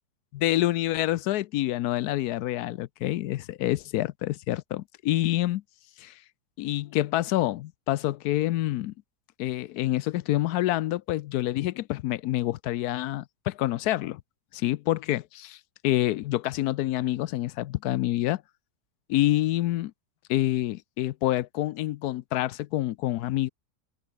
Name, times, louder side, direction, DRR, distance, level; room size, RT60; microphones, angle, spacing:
voice 1, 0.3-5.6 6.0-6.1 6.6-8.9 9.4-14.2 14.5-15.6 15.8-18.4 19.1-19.9 20.3-23.5, left 15 dB, 70° left, 1.0 m, -27 dB
omnidirectional pair, 1.8 m